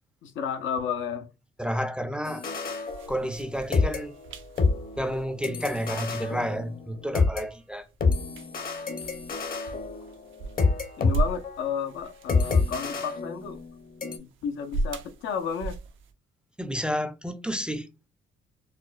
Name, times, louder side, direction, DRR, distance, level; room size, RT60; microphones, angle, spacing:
voice 1, 0.2-1.3 11.0-13.6 14.2-15.8, left 7 dB, 75° left, 0.6 m, -32 dB
voice 2, 1.6-2.4 3.1-4.1 5.0-7.9 16.6-18.1, equal, 5° right, 0.4 m, -30 dB
sound 1, 2.2-3.5 3.7-7.4 8.0-11.1 11.4-11.7 12.3-13.7 14.0-14.2, left 4 dB, 45° left, 0.8 m, -28 dB
sound 2, 2.9-16.1, right 2 dB, 80° right, 0.6 m, -38 dB
4.1 x 2.1 x 2.4 m
cardioid pair, 90°, 20 cm